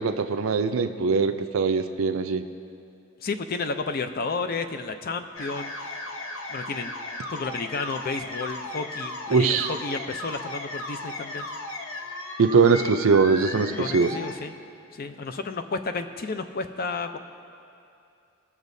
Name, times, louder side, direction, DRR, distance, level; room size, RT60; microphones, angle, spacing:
voice 1, 0.0-2.4 9.3-9.7 12.4-14.1, right 5 dB, 75° right, 8 dB, 0.5 m, -21 dB
voice 2, 3.2-5.7 6.5-6.9 7.3-11.5 13.8-14.5 14.9-17.2, left 4 dB, 45° left, 8 dB, 0.5 m, -32 dB
sound 1, 5.4-14.3, left 2 dB, 70° left, 0.9 m, -36 dB
20.5 x 7.2 x 2.7 m, 2.6 s
head